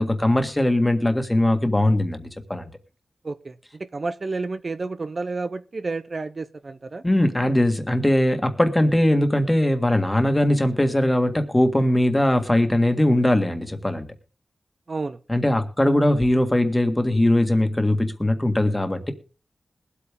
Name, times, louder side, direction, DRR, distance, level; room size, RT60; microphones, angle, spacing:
voice 1, 0.0-2.6 7.0-14.1 15.3-19.1, left 1 dB, 15° left, 7 dB, 1.8 m, -20 dB
voice 2, 3.2-3.5 3.9-7.0 14.9-15.2, right 3 dB, 50° right, 11 dB, 0.7 m, -30 dB
21.0 x 8.4 x 3.6 m, 0.35 s
wide cardioid pair, 80°, 0 cm